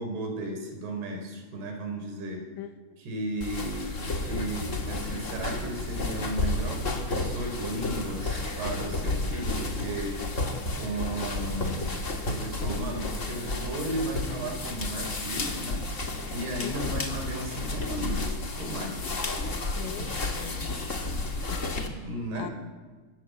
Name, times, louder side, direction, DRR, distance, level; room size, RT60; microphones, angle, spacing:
voice 1, 0.0-2.5 3.0-3.9 4.2-10.2 10.7-11.8 12.2-15.8 16.3-19.0 22.0-22.5, right 1 dB, 65° right, 3 dB, 6.1 m, -34 dB
sound 1, 3.4-21.9, left 2 dB, 35° left, 1.3 m, -32 dB
voice 2, 16.6-17.0 19.8-20.9 21.5-21.7 22.4-22.5, left 11 dB, 85° left, 8 dB, 3.8 m, -40 dB
24.5 x 21.0 x 8.0 m, 1.4 s
omnidirectional pair, 5.0 m